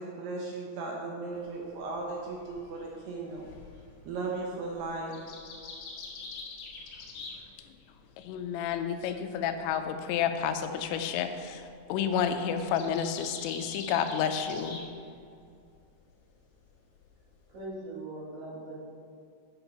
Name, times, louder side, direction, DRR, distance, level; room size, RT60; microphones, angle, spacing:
voice 1, 0.0-3.5 4.1-5.2, right 3 dB, 75° right, -1 dB, 2.6 m, -36 dB
sound 1, 1.3-8.0 8.3-14.9 15.1-15.8 16.2-17.6, left 4 dB, 65° left, 2.5 m, -46 dB
voice 2, 8.2-14.8, left 8 dB, 85° left, 8 dB, 2.8 m, -30 dB
voice 3, 17.5-18.7, right 2 dB, 55° right, -6 dB, 3.3 m, -40 dB
7.9 x 7.1 x 5.7 m, 2.4 s
omnidirectional pair, 5.4 m